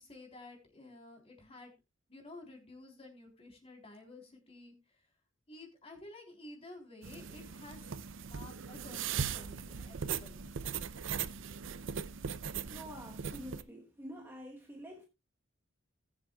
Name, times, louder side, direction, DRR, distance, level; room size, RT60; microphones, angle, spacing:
voice 1, 0.0-1.8 2.1-5.1 5.5-7.9 8.2-10.8, left 2 dB, 30° left, 3.6 m, -52 dB
sound 1, 7.0-13.6, right 7 dB, 65° right, 0.6 m, -39 dB
voice 2, 12.7-15.1, equal, 10° right, 1.2 m, -47 dB
20.0 x 7.6 x 2.3 m
head